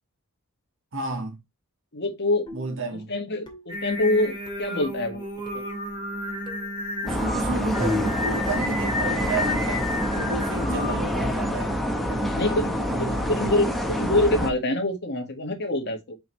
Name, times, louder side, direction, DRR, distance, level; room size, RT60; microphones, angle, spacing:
voice 1, 0.9-1.4 2.5-3.1 7.0-9.9 10.2-11.8 12.1-12.6 12.9-13.7, right 3 dB, 60° right, 1.8 m, -32 dB
voice 2, 1.9-2.4 2.9-5.2 5.5-5.6 10.6-10.8 12.3-16.2, left 2 dB, 50° left, 1.9 m, -26 dB
sound 1, 2.5-2.9 3.5-3.9 4.5-4.8 5.5-5.8 6.5-6.8 7.5-7.7 8.5-8.7 9.5-9.7, left 1 dB, 20° left, 2.4 m, -44 dB
Singing, 3.7-11.3, left 1 dB, 20° right, 2.8 m, -32 dB
sound 2, 7.1-14.5, equal, ahead, 1.1 m, -27 dB
5.7 x 5.5 x 3.2 m
head